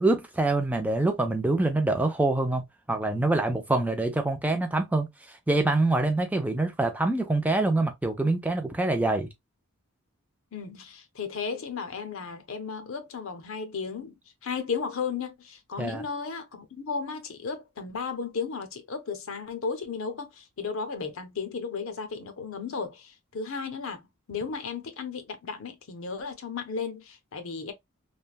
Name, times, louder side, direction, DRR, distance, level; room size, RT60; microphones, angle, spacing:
voice 1, 0.0-9.3 15.8-16.0, right 2 dB, 5° right, 0.3 m, -25 dB
voice 2, 10.5-27.7, left 5 dB, 65° left, 0.6 m, -34 dB
3.2 x 2.1 x 2.2 m
head